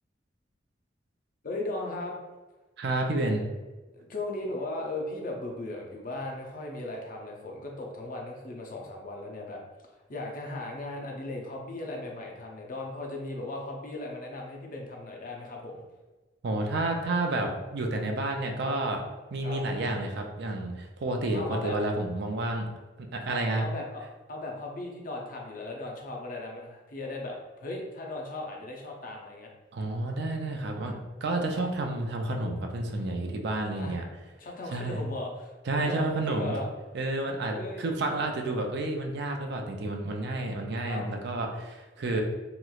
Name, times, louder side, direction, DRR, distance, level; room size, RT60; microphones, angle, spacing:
voice 1, 1.4-2.2 3.9-9.6 9.9-15.8 18.6-18.7 19.4-19.6 21.3-21.8 23.2-24.0 24.3-29.5 31.5-31.6 33.7-34.0 34.4-35.5 35.8-36.7 37.5-38.0 40.8-41.0, left 2 dB, 45° left, 0 dB, 0.5 m, -37 dB
voice 2, 2.8-3.4 16.4-19.0 19.3-22.7 23.0-23.7 29.7-34.0 34.7-35.0 35.7-36.6 36.9-42.2, right 2 dB, 60° right, 3 dB, 0.4 m, -30 dB
3.0 x 2.9 x 2.3 m, 1.2 s
head